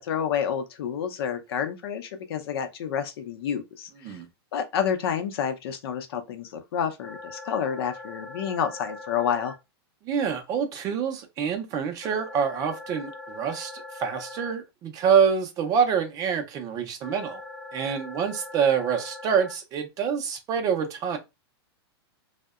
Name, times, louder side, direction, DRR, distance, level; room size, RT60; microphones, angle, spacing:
voice 1, 0.0-4.2 4.5-9.5, left 8 dB, 65° left, 0.6 m, -29 dB
sound 1, 7.0-9.5 12.0-14.5 17.0-19.5, left 2 dB, 20° left, 0.7 m, -41 dB
voice 2, 10.0-17.4 17.7-21.2, right 7 dB, 25° right, 0.4 m, -26 dB
2.6 x 2.1 x 2.3 m
supercardioid pair, 145°, 13 cm